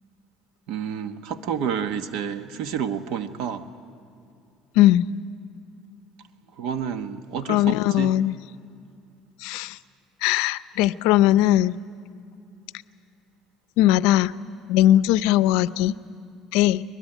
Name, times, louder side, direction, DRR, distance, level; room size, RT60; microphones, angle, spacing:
voice 1, 0.7-3.6 6.6-8.1, right 8 dB, 75° right, 1.2 m, -29 dB
voice 2, 4.8-5.1 7.5-8.4 9.4-9.8 10.2-11.8 13.8-14.3 14.7-16.0 16.5-16.8, left 13 dB, 85° left, 0.5 m, -19 dB
22.0 x 21.0 x 10.0 m
cardioid pair, 135°, 0 cm